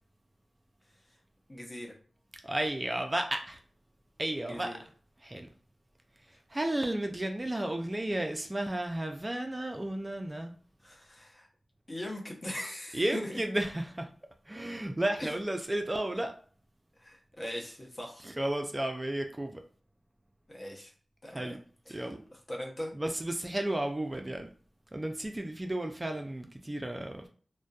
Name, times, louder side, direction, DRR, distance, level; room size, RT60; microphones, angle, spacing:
voice 1, 1.5-1.9 4.4-4.8 6.3-6.4 10.8-11.5 11.9-13.4 15.2-15.3 17.0-18.3 20.5-20.9 21.2-21.6 22.5-22.9, left 1 dB, 40° left, 0.8 m, -40 dB
voice 2, 2.4-3.6 4.2-4.8 5.2-5.5 6.2-10.5 12.9-14.1 14.5-16.4 18.2-19.6 21.3-21.6 21.9-22.2 22.9-24.5 24.9-27.3, right 1 dB, 25° right, 0.4 m, -33 dB
2.5 x 2.1 x 2.3 m
cardioid pair, 45°, 0 cm